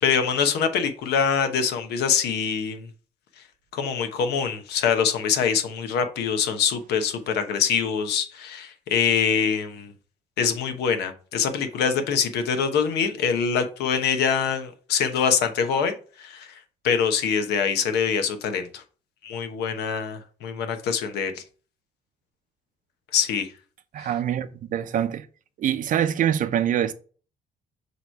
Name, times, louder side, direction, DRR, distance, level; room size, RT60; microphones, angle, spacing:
voice 1, 0.0-2.9 3.7-9.9 10.4-16.5 16.8-18.8 19.2-21.4 23.1-23.5 24.0-24.1, left 6 dB, 80° left, 1.0 m, -24 dB
voice 2, 23.9-25.3 25.6-26.9, right 10 dB, 50° right, 0.6 m, -24 dB
6.7 x 3.1 x 4.5 m
cardioid pair, 110°, 17 cm